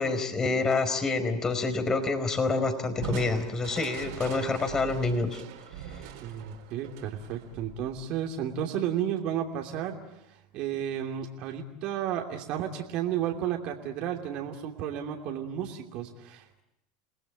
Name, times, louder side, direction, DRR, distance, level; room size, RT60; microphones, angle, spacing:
voice 1, 0.0-5.4, left 3 dB, 25° left, 10 dB, 4.6 m, -27 dB
Crushing, 3.0-8.4, right 9 dB, 70° right, 4.1 m, -42 dB
voice 2, 6.2-10.0 10.3-16.6, right 9 dB, 55° right, 2 dB, 2.8 m, -33 dB
29.5 x 19.5 x 8.5 m, 0.84 s
hypercardioid pair, 90°, 2 cm